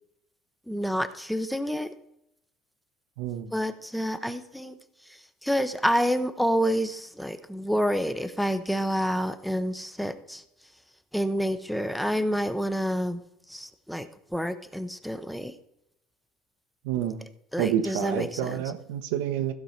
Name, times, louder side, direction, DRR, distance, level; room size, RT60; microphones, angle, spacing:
voice 1, 0.7-1.9 3.5-4.8 5.1-10.4 11.1-13.2 13.5-15.5 17.5-18.5, equal, ahead, 10 dB, 0.6 m, -28 dB
voice 2, 3.2-3.5 16.8-17.2 17.6-19.5, right 10 dB, 90° right, 9 dB, 1.0 m, -28 dB
15.0 x 5.3 x 4.4 m, 0.81 s
cardioid pair, 150°, 0 cm